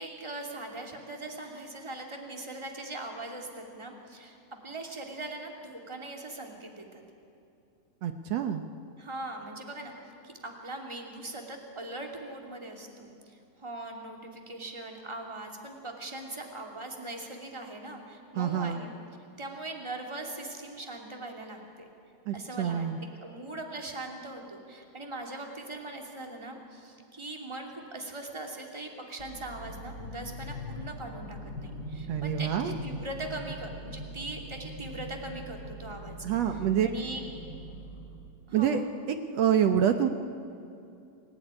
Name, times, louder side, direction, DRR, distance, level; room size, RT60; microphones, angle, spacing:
voice 1, 0.0-7.0 9.0-10.0 10.2-18.9 19.4-21.9 22.3-36.1 36.5-37.2 38.5-38.9, right 2 dB, 10° right, 1 dB, 2.4 m, -41 dB
voice 2, 8.0-8.7 18.4-18.8 22.3-23.0 32.1-32.7 36.2-36.9 38.5-40.1, right 9 dB, 65° right, 7 dB, 1.8 m, -27 dB
sound 1, 29.2-38.3, equal, 35° left, 3.3 m, -41 dB
27.5 x 17.5 x 9.9 m, 2.6 s
omnidirectional pair, 3.7 m